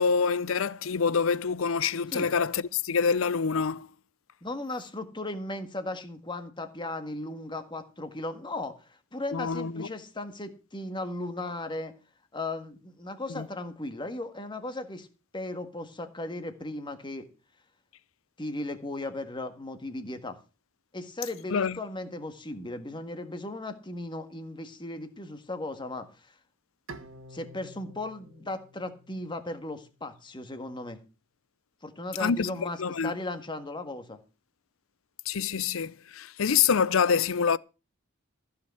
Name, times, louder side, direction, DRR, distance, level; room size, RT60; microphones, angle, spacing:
voice 1, 0.0-3.9 9.3-9.9 13.3-13.5 21.5-21.8 32.2-32.5 32.8-33.1 35.3-37.6, left 6 dB, 75° left, 0.6 m, -26 dB
voice 2, 4.4-11.9 12.3-15.1 15.3-17.3 18.4-20.4 20.9-26.3 27.3-31.0 31.8-34.2, left 2 dB, 25° left, 1.7 m, -36 dB
Bowed string instrument, 26.9-30.1, right 1 dB, 70° right, 1.5 m, -49 dB
15.0 x 5.7 x 7.6 m
head